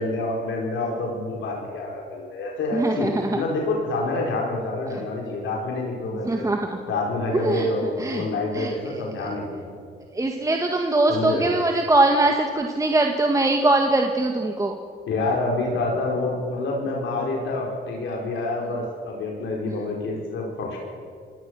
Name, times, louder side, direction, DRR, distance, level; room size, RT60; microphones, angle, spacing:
voice 1, 0.0-6.5 6.9-9.7 11.1-11.5 15.1-20.8, left 2 dB, 75° left, -1 dB, 5.1 m, -27 dB
voice 2, 2.7-3.4 4.9-5.0 6.2-6.8 7.3-8.3 8.5-9.3 10.1-14.8, right 2 dB, 15° right, 2 dB, 1.9 m, -22 dB
26.5 x 17.5 x 6.6 m, 2.2 s
cardioid pair, 90°, 20 cm